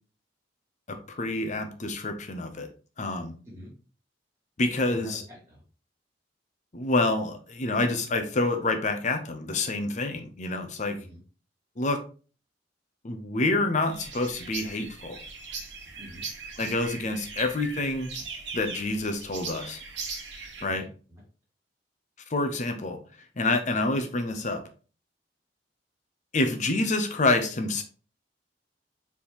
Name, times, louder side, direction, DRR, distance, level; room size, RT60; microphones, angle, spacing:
voice 1, 0.9-2.7 3.0-3.4 4.6-5.2 6.7-11.0 11.8-12.0 13.0-15.2 16.6-18.1 18.5-19.8 20.6-20.9 22.3-23.0 23.4-24.6 26.3-27.8, left 2 dB, 40° left, 7 dB, 0.7 m, -27 dB
voice 2, 4.9-5.6 10.9-11.2 15.9-16.3 20.6-21.2, equal, 15° right, -7 dB, 1.6 m, -46 dB
sound 1, 13.9-20.7, right 4 dB, 80° right, 1.1 m, -39 dB
4.4 x 3.5 x 2.9 m, 0.37 s
head